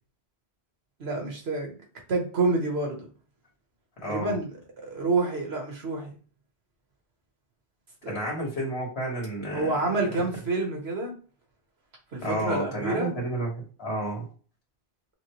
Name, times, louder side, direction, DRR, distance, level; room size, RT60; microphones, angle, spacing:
voice 1, 1.0-1.8 2.1-3.1 4.1-6.1 8.0-8.2 9.5-11.2 12.1-13.1, right 3 dB, 75° right, 1.4 m, -28 dB
voice 2, 4.0-4.3 8.1-9.8 12.2-13.5 13.8-14.3, right 1 dB, 70° left, 1.9 m, -30 dB
5.9 x 2.2 x 3.0 m
omnidirectional pair, 1.1 m